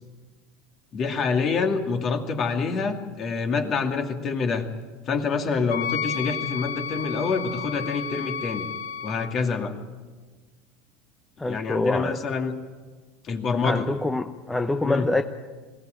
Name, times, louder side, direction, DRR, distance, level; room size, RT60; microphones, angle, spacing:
voice 1, 0.9-4.7 5.1-8.7 9.0-9.7 11.5-12.5 13.2-13.9 14.8-15.1, left 4 dB, 40° left, 2.4 m, -26 dB
Wind instrument woodwind instrument, 5.7-9.3, left 7 dB, 85° left, 0.8 m, -32 dB
voice 2, 11.4-12.2 13.6-15.2, left 2 dB, 10° left, 0.8 m, -25 dB
21.0 x 17.5 x 9.1 m
supercardioid pair, 110°, 0 cm